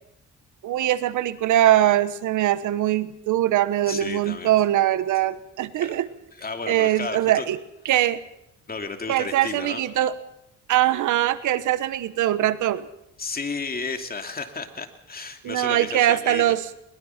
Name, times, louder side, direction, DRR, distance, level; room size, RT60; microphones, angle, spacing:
voice 1, 0.6-6.0 6.7-7.6 7.8-8.2 9.1-10.1 10.7-12.9 15.4-16.6, right 13 dB, 80° right, 15 dB, 1.2 m, -22 dB
voice 2, 3.9-4.5 5.8-6.0 6.3-7.5 8.7-9.8 13.2-16.6, left 4 dB, 30° left, 6 dB, 2.7 m, -33 dB
21.5 x 21.0 x 5.9 m, 0.82 s
cardioid pair, 90°, 30 cm